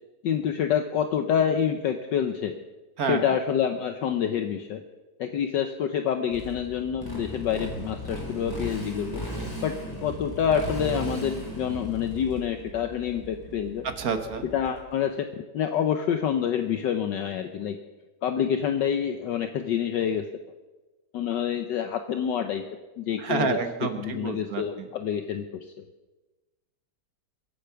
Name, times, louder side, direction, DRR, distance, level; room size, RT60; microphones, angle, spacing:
voice 1, 0.2-2.6 3.1-4.8 5.2-9.7 10.0-13.8 14.5-15.3 15.5-17.8 18.2-20.2 21.1-22.6 23.0-23.6 24.0-25.5, left 8 dB, 65° left, 7 dB, 1.3 m, -27 dB
voice 2, 3.0-3.4 13.8-14.5 23.2-24.9, right 5 dB, 50° right, 8 dB, 1.5 m, -29 dB
Motorcycle, 6.3-14.9, equal, 10° left, 4.2 m, -36 dB
22.5 x 8.3 x 5.8 m, 1.2 s
omnidirectional pair, 2.3 m